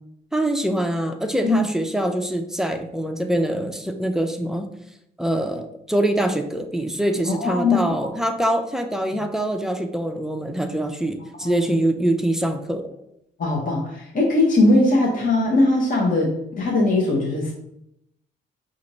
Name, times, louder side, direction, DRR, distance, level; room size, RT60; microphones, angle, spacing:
voice 1, 0.3-4.7 5.2-12.8, right 1 dB, ahead, 5 dB, 0.4 m, -24 dB
voice 2, 7.3-8.0 11.4-11.7 13.4-17.5, left 2 dB, 45° left, -2 dB, 0.9 m, -20 dB
4.9 x 2.5 x 3.0 m, 0.79 s
cardioid pair, 90°, 20 cm